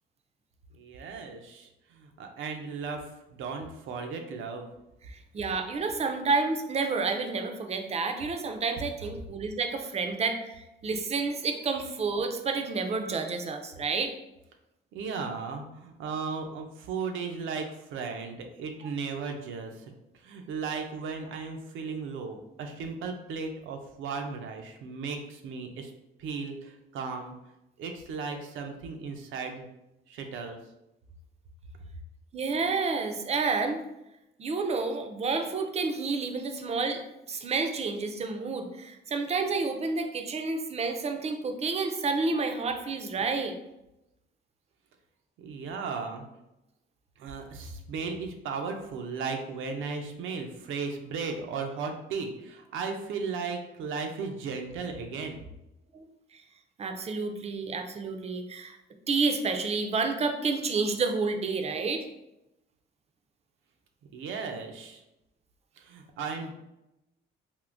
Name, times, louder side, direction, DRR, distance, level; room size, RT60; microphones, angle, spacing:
voice 1, 0.7-4.7 14.9-25.9 26.2-27.3 27.8-29.7 30.1-30.6 45.4-46.2 47.2-55.4 64.1-65.0 65.8-66.5, right 5 dB, 80° right, 4 dB, 0.5 m, -36 dB
voice 2, 5.1-14.1 32.3-33.8 34.4-37.0 37.3-43.5 55.9-56.0 56.3-56.4 56.8-58.8 59.1-62.0, right 4 dB, 35° right, 6 dB, 0.4 m, -30 dB
3.6 x 2.6 x 2.5 m, 0.90 s
cardioid pair, 90°, 20 cm